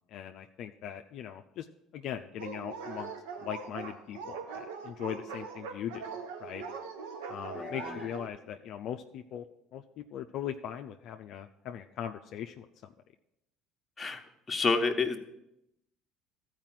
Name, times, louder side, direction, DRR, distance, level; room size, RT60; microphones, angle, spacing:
voice 1, 0.1-1.7 1.9-3.1 3.4-6.1 6.4-6.6 7.3-9.4 9.7-12.7, left 10 dB, 60° left, 5 dB, 0.5 m, -40 dB
Dog, 2.4-8.3, right 5 dB, 90° right, 1.1 m, -41 dB
voice 2, 14.5-15.2, left 4 dB, 20° left, 4 dB, 1.3 m, -28 dB
13.5 x 4.9 x 7.5 m, 0.84 s
supercardioid pair, 80°, 0 cm